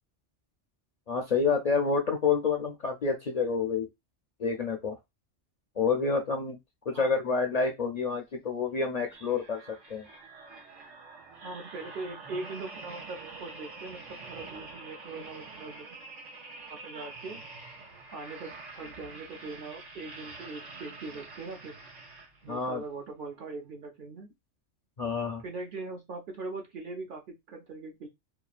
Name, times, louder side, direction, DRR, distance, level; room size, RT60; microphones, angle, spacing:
voice 1, 1.1-3.9 4.4-5.0 5.8-6.6 6.9-9.6 9.9-10.1 22.5-22.8 25.0-25.4, left 5 dB, 60° left, 2 dB, 0.4 m, -28 dB
sound 1, 9.1-22.6 23.2-23.4, right 3 dB, 85° right, 1.4 m, -46 dB
voice 2, 11.4-15.9 16.7-17.4 18.1-21.8 22.4-24.3 25.4-28.1, right 3 dB, 55° right, 2 dB, 0.6 m, -41 dB
2.9 x 2.4 x 2.4 m, 0.20 s
omnidirectional pair, 1.2 m